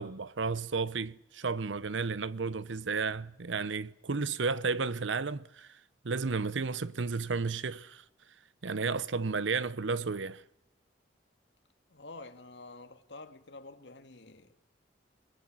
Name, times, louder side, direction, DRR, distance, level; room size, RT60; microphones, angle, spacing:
voice 1, 0.0-5.7 6.0-8.0 8.6-10.4, right 4 dB, 85° right, 0.8 m, -32 dB
voice 2, 11.9-14.6, left 2 dB, 70° left, 2.1 m, -49 dB
21.5 x 20.0 x 8.8 m
head